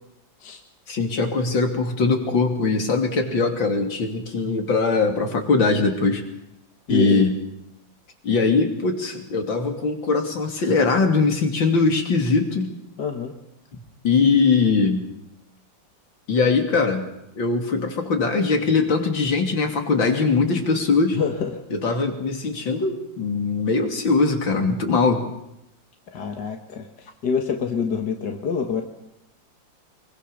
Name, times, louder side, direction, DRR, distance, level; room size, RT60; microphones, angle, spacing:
voice 1, 0.9-6.2 6.9-7.3 8.2-12.7 14.0-15.1 16.3-17.1 17.4-21.2 21.7-25.2, left 4 dB, 75° left, 4 dB, 3.5 m, -21 dB
voice 2, 6.9-7.3 13.0-13.3 21.1-21.6 26.1-28.8, left 6 dB, 60° left, 4 dB, 2.3 m, -26 dB
24.5 x 23.5 x 6.8 m, 0.83 s
omnidirectional pair, 2.1 m